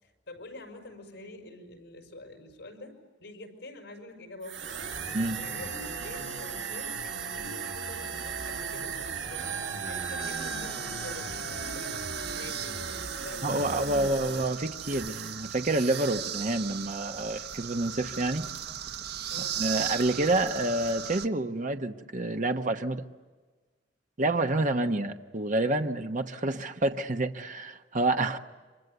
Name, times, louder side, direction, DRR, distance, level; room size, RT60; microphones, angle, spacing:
voice 1, 0.0-4.8 5.4-9.0 9.3-12.0 12.2-14.4 19.3-19.7 24.8-24.9, left 1 dB, 70° left, 4 dB, 5.6 m, -46 dB
sound 1, 4.4-15.4 15.7-16.2, right 5 dB, 75° right, 2.4 m, -36 dB
sound 2, 10.2-21.3, right 10 dB, 60° right, 1.0 m, -38 dB
voice 2, 13.4-18.4 19.6-23.0 24.2-28.4, right 2 dB, 45° right, 6 dB, 1.1 m, -28 dB
28.5 x 25.5 x 8.0 m, 1.4 s
head